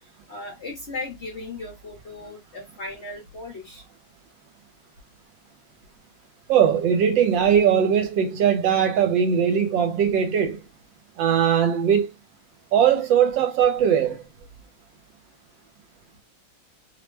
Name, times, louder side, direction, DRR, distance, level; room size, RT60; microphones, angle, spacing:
voice 1, 0.3-3.8, left 2 dB, 45° left, 0.9 m, -36 dB
voice 2, 6.5-10.6 11.2-12.1 12.7-14.2, right 8 dB, 75° right, 1.4 m, -20 dB
3.2 x 2.1 x 3.1 m
omnidirectional pair, 2.1 m